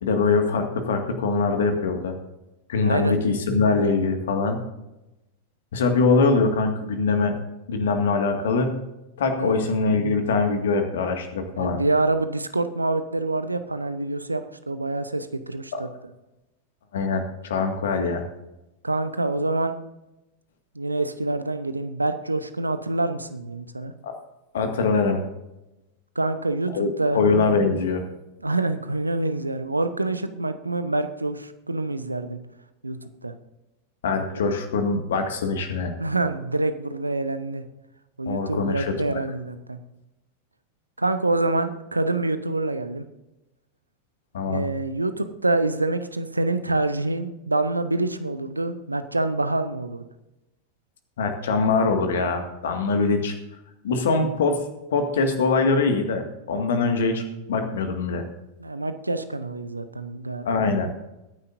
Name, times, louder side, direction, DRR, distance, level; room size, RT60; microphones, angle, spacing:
voice 1, 0.0-2.2 2.7-4.6 5.7-7.3 7.7-8.8 9.2-11.8 15.7-15.8 16.9-18.2 24.0-24.1 24.5-25.2 26.7-26.9 27.1-28.0 34.0-35.9 38.3-39.2 44.3-44.6 51.2-53.3 53.8-54.6 54.9-57.2 57.5-58.2 60.4-60.9, left 4 dB, 60° left, 5 dB, 2.0 m, -23 dB
voice 2, 2.8-3.2 9.4-9.5 11.6-15.9 18.8-19.7 20.7-23.9 26.1-27.2 28.4-32.4 32.8-33.3 36.0-37.7 38.2-39.8 41.0-43.1 44.5-50.0 58.6-60.5, right 2 dB, 85° right, 11 dB, 0.9 m, -26 dB
22.0 x 9.7 x 2.7 m, 0.96 s
figure-of-eight pair, 90°, 0 cm